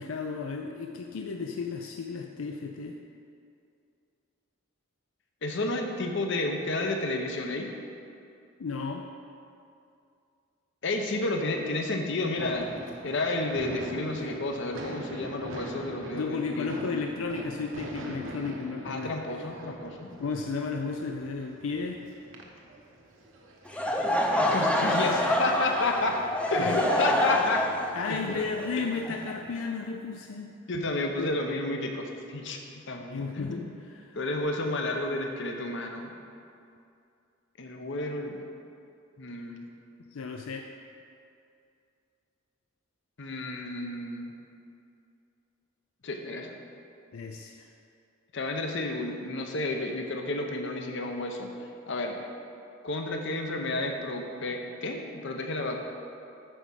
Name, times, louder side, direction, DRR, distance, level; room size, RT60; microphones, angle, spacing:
voice 1, 0.0-3.0 8.6-9.1 16.1-19.5 20.2-22.0 26.5-26.8 27.9-30.5 31.2-31.3 33.1-34.2 40.1-40.7 47.1-47.7, left 4 dB, 85° left, 3 dB, 0.5 m, -34 dB
voice 2, 5.4-7.7 10.8-12.7 13.0-16.7 18.8-20.1 24.4-26.2 26.5-27.6 28.1-28.2 30.7-32.6 32.9-33.7 34.1-36.1 37.6-38.4 39.2-39.6 43.2-44.3 46.0-46.6 48.3-51.5 51.9-52.2 52.8-55.8, left 2 dB, 60° left, 3 dB, 0.8 m, -31 dB
sound 1, 12.4-23.7, right 1 dB, 70° right, 1.0 m, -42 dB
Laughter / Crowd, 23.7-29.6, left 1 dB, 5° left, 0.5 m, -27 dB
9.0 x 4.8 x 5.8 m, 2.5 s
head